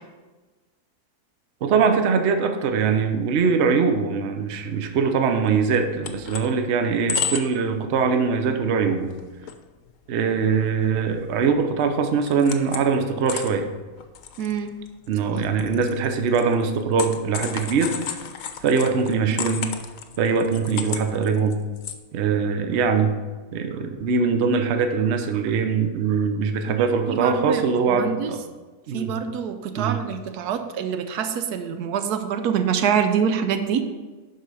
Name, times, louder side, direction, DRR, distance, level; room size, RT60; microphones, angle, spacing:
voice 1, 1.6-9.1 10.1-13.7 15.1-18.2 18.6-19.7 20.2-21.6 22.1-23.1 23.5-28.4 28.9-29.1 29.8-30.0, right 5 dB, 55° right, 6 dB, 0.9 m, -22 dB
sound 1, 5.5-5.6 5.7-6.5 6.9-7.6 8.0-8.2 8.6-8.7 9.0-9.6 9.9-10.0 10.5-11.6 11.9-12.9 13.3-21.9, left 7 dB, 65° left, 1.0 m, -33 dB
voice 2, 14.4-14.7 15.2-15.3 27.2-27.6 27.9-28.3 28.9-33.8, right 7 dB, 80° right, 8 dB, 1.1 m, -25 dB
11.5 x 4.7 x 4.8 m, 1.3 s
omnidirectional pair, 1.7 m